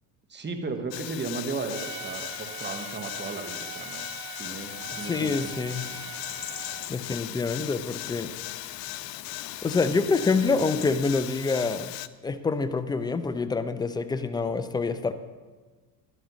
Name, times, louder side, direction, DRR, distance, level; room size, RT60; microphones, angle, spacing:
voice 1, 0.3-4.1 4.4-5.5, right 3 dB, 20° right, 5 dB, 1.4 m, -35 dB
sound 1, 0.9-12.1, left 17 dB, 80° left, 0.6 m, -38 dB
Trumpet, 1.7-6.9, right 11 dB, 40° right, 0.6 m, -42 dB
sound 2, 4.4-11.0, left 10 dB, 45° left, 0.8 m, -45 dB
voice 2, 5.0-5.9 6.9-8.3 9.6-11.9 12.2-15.1, left 4 dB, 10° left, 12 dB, 0.4 m, -26 dB
12.0 x 11.5 x 3.1 m, 1.4 s
hypercardioid pair, 85°, 48 cm